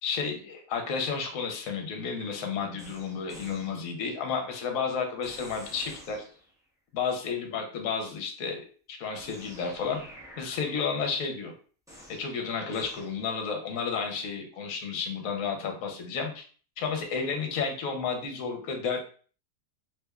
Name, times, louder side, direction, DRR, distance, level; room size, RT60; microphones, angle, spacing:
voice 1, 0.0-6.2 6.9-10.0 10.4-11.5 12.1-16.4 16.8-19.0, left 5 dB, 65° left, 3 dB, 1.1 m, -32 dB
sound 1, 2.8-4.1 5.2-6.6 9.1-11.0 11.9-13.4, equal, 5° right, 0.8 m, -50 dB
3.3 x 3.2 x 2.3 m, 0.42 s
omnidirectional pair, 1.7 m